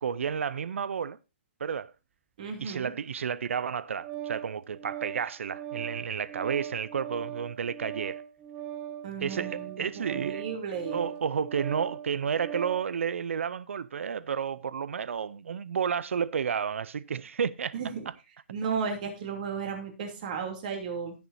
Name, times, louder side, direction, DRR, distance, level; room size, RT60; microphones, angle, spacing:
voice 1, 0.0-1.2 1.6-1.9 2.6-8.2 9.2-10.4 10.9-17.8, right 7 dB, 70° right, 0.5 m, -31 dB
voice 2, 2.4-2.9 9.0-11.1 17.7-18.0 18.5-21.1, right 6 dB, 35° right, 2.9 m, -34 dB
Organ, 3.5-12.9, right 11 dB, 15° right, 0.7 m, -40 dB
17.0 x 7.0 x 2.7 m
hypercardioid pair, 165°, 7 cm